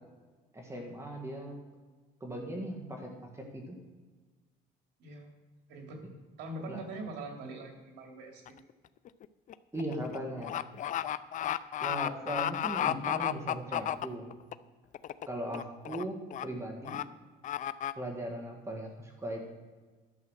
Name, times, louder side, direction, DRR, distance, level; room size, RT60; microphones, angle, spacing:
voice 1, 0.5-1.6 2.2-3.8 6.7-6.8 9.7-10.6 11.8-14.3 15.3-17.0 18.0-19.4, right 1 dB, 15° right, 1 dB, 1.8 m, -38 dB
voice 2, 5.0-5.3 5.7-6.0 6.4-8.6, right 2 dB, 85° right, 1 dB, 2.8 m, -42 dB
sound 1, 8.5-8.7 9.1-14.5 14.9-15.3 15.5-16.0 16.3-16.4 16.8-17.0 17.4-17.9, left 11 dB, 50° left, 0.5 m, -33 dB
11.5 x 7.3 x 6.5 m, 1.4 s
cardioid pair, 110°, 17 cm